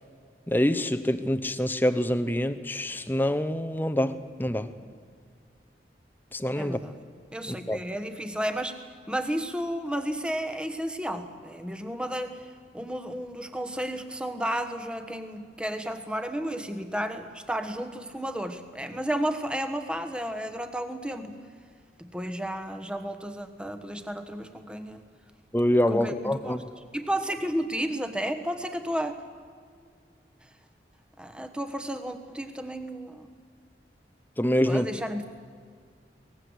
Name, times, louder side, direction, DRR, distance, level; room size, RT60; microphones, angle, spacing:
voice 1, 0.5-4.7 6.3-6.8 7.5-7.8 25.5-26.7 34.4-34.9, left 1 dB, 10° left, 10 dB, 0.9 m, -26 dB
voice 2, 6.5-7.0 7.3-12.5 12.7-21.4 22.0-25.0 25.9-26.6 26.9-29.2 31.2-33.3 34.6-35.3, equal, 5° right, 8 dB, 1.3 m, -32 dB
23.5 x 19.5 x 8.0 m, 2.1 s
head